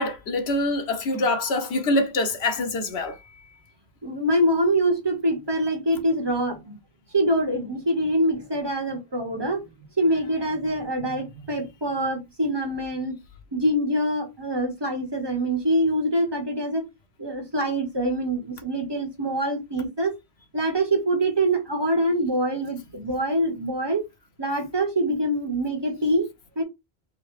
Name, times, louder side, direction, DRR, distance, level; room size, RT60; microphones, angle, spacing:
voice 1, 0.0-3.2, left 2 dB, 75° left, 1.2 m, -25 dB
voice 2, 4.0-6.7 7.1-9.6 10.0-13.2 13.5-16.8 17.2-20.1 20.5-24.0 24.4-26.3 26.5-26.6, right 1 dB, 25° right, 1.7 m, -24 dB
3.9 x 2.8 x 4.8 m
omnidirectional pair, 1.1 m